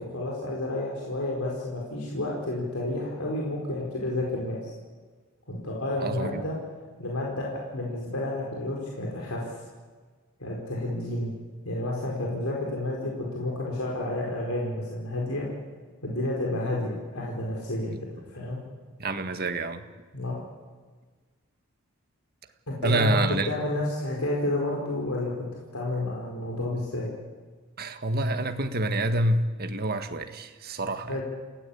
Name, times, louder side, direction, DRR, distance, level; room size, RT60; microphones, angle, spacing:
voice 1, 0.0-4.7 5.5-6.6 7.0-9.6 10.4-11.3 11.6-15.5 16.0-17.9 18.3-18.6 20.1-20.4 22.7-25.5 25.7-27.1 31.1-31.2, left 1 dB, 80° left, -2 dB, 4.7 m, -30 dB
voice 2, 6.0-6.4 19.0-19.8 22.8-23.5 27.8-31.2, right 1 dB, 45° right, 7 dB, 1.6 m, -27 dB
28.5 x 16.5 x 8.6 m, 1.4 s
head